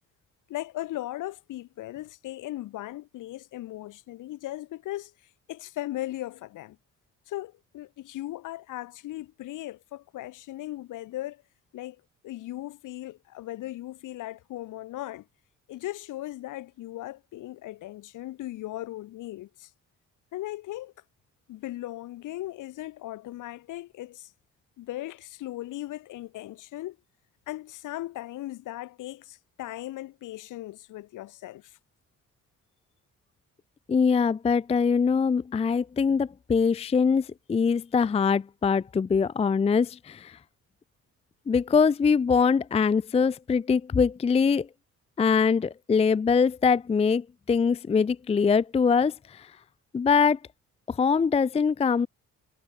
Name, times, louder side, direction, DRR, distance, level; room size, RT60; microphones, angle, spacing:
voice 1, 0.5-5.1 5.5-6.8 7.3-11.4 11.7-15.3 15.7-19.7 20.3-20.9 21.5-24.3 24.8-27.0 27.5-31.8, left 15 dB, 90° left, 6.2 m, -38 dB
voice 2, 33.9-40.4 41.5-44.7 45.2-49.5 49.9-50.4 50.9-52.1, left 5 dB, 20° left, 0.4 m, -23 dB
cardioid pair, 90°, 30 cm